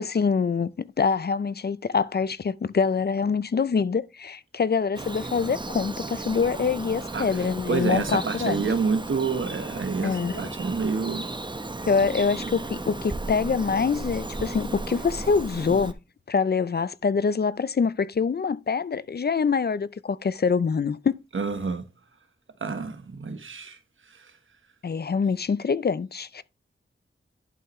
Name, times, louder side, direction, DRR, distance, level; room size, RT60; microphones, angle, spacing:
voice 1, 0.0-8.7 10.0-10.5 11.9-15.9 16.3-21.2 24.8-26.4, left 5 dB, 50° left, 0.5 m, -25 dB
Bird vocalization bird call bird song, 5.0-15.9, right 2 dB, 20° right, 0.8 m, -35 dB
voice 2, 7.7-11.3 21.3-21.8 22.6-23.8, right 5 dB, 70° right, 1.1 m, -28 dB
11.0 x 5.7 x 3.1 m
wide cardioid pair, 85°, 21 cm